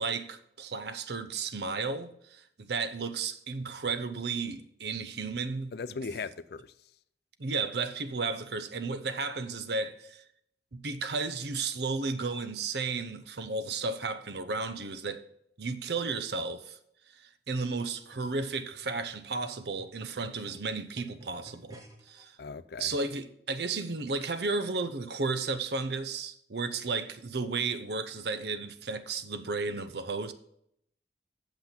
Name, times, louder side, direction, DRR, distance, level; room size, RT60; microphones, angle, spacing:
voice 1, 0.0-5.7 7.4-10.2 10.7-15.2 15.6-16.8 17.1-22.4 22.8-30.3, right 4 dB, 65° right, 0.7 m, -33 dB
voice 2, 5.7-6.9 22.4-22.9, left 4 dB, 60° left, 0.4 m, -39 dB
sound 1, 18.1-22.2 23.0-23.1, right 1 dB, 20° right, 1.4 m, -54 dB
8.1 x 7.0 x 5.8 m
head